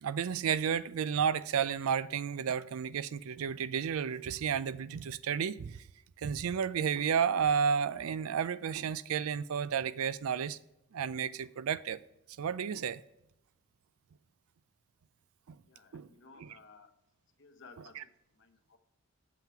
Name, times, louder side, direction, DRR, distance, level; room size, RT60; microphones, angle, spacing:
voice 1, 0.0-5.8 6.2-10.6 10.9-12.0 12.4-13.0 15.5-15.6 15.9-16.1 16.4-16.6 17.8-18.0, right 7 dB, 75° right, 0.4 m, -32 dB
voice 2, 15.7-16.9 17.4-18.0 18.4-18.8, left 4 dB, 55° left, 0.8 m, -56 dB
7.3 x 5.8 x 4.6 m
head